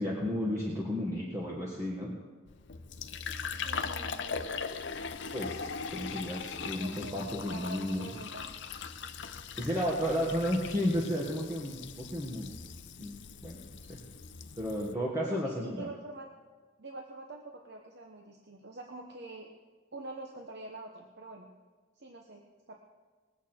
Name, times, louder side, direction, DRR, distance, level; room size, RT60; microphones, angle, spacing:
voice 1, 0.0-2.1 5.3-8.1 9.6-12.5 13.0-13.1 13.4-13.6 13.9-14.0 14.6-15.9, equal, 15° right, -5 dB, 1.6 m, -33 dB
Fill (with liquid), 2.5-14.9, left 5 dB, 60° left, 0.7 m, -40 dB
voice 2, 3.6-4.5 6.7-8.5 9.4-9.5 15.2-16.3 16.8-19.5 19.9-21.5 22.0-22.8, right 2 dB, 55° right, 2 dB, 1.0 m, -45 dB
21.0 x 8.5 x 4.5 m, 1.4 s
head